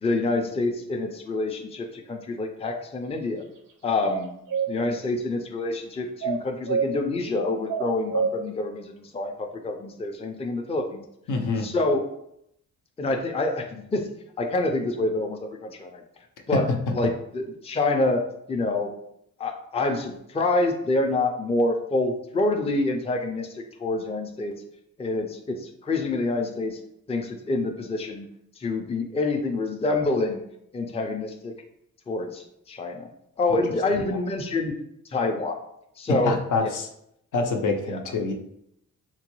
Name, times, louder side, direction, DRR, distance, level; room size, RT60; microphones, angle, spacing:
voice 1, 0.0-3.4 3.8-4.3 4.7-11.0 11.6-12.1 13.0-14.1 14.4-16.0 16.5-18.2 18.5-18.9 19.4-24.6 25.0-26.8 27.1-28.3 28.6-30.4 30.7-31.5 32.1-33.1 33.4-34.8 35.1-35.6 36.0-36.7 37.9-38.0, left 2 dB, 20° left, 3 dB, 0.4 m, -27 dB
sound 1, 4.1-4.7 6.2-6.9 7.7-8.3, right 6 dB, 80° right, 0.6 m, -26 dB
voice 2, 11.3-11.7 16.5-16.6 34.1-34.2 36.1-36.9 37.3-38.3, left 3 dB, 75° left, 3 dB, 0.6 m, -26 dB
3.7 x 2.2 x 3.0 m, 0.74 s
cardioid pair, 95°, 32 cm